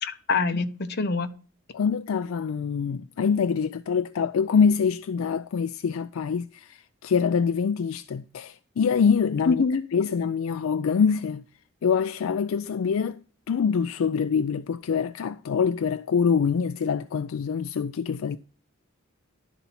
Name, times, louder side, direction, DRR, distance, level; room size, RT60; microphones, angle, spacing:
voice 1, 0.0-1.3 9.5-9.8, left 4 dB, 55° left, 0.8 m, -25 dB
voice 2, 1.7-9.6 9.9-11.4 11.8-13.2 13.5-18.4, left 6 dB, 75° left, 0.4 m, -25 dB
11.5 x 4.1 x 5.8 m
head